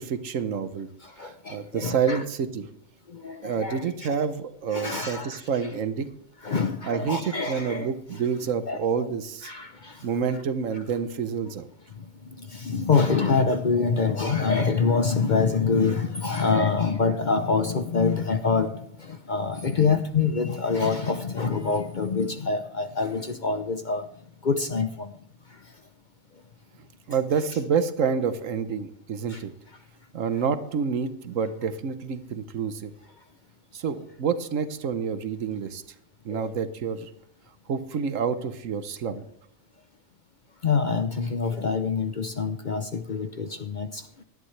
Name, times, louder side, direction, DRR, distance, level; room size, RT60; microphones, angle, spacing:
voice 1, 0.0-0.9 1.2-2.7 3.4-6.1 6.8-9.5 10.0-11.7 27.1-29.5 30.1-32.9 33.7-35.8 36.2-37.1 37.7-39.2, right 6 dB, 70° right, 12 dB, 1.3 m, -28 dB
voice 2, 1.0-2.2 3.1-3.9 4.7-5.4 6.4-7.9 8.7-8.8 9.4-10.0 12.0-24.0 24.4-25.1 29.3-29.4 36.3-36.5 39.1-39.2 40.6-44.0, left 5 dB, 45° left, 8 dB, 0.7 m, -26 dB
17.5 x 11.5 x 3.3 m, 0.73 s
omnidirectional pair, 1.4 m